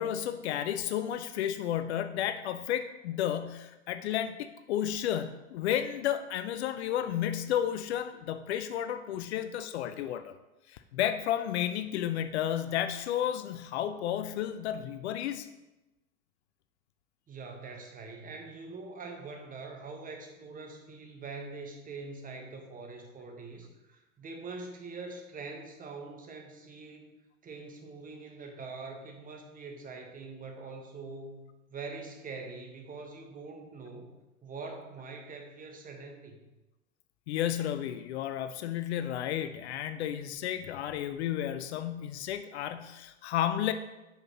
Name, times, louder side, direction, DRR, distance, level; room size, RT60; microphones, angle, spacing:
voice 1, 0.0-10.4 10.7-15.5 37.3-43.7, left 10 dB, 60° left, 10 dB, 0.5 m, -32 dB
voice 2, 17.3-27.1 27.4-34.1 34.4-36.4, right 3 dB, 20° right, 3 dB, 1.1 m, -44 dB
7.8 x 5.7 x 2.8 m, 1.0 s
figure-of-eight pair, 80°, 39 cm